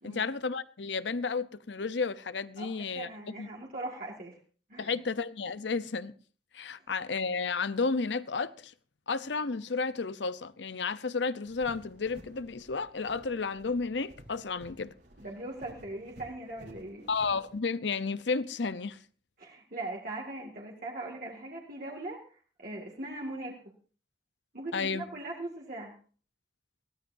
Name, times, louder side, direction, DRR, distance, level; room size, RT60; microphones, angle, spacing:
voice 1, 0.0-3.5 4.8-6.1 6.5-8.7 9.1-14.9 17.1-19.0 24.7-25.0, left 4 dB, 85° left, 0.8 m, -32 dB
voice 2, 2.6-4.4 4.7-4.9 15.2-17.1 19.4-23.5 24.5-25.9, right 2 dB, 50° right, 2.2 m, -40 dB
sound 1, 11.4-17.6, equal, 70° right, 4.1 m, -54 dB
21.0 x 16.5 x 2.7 m
head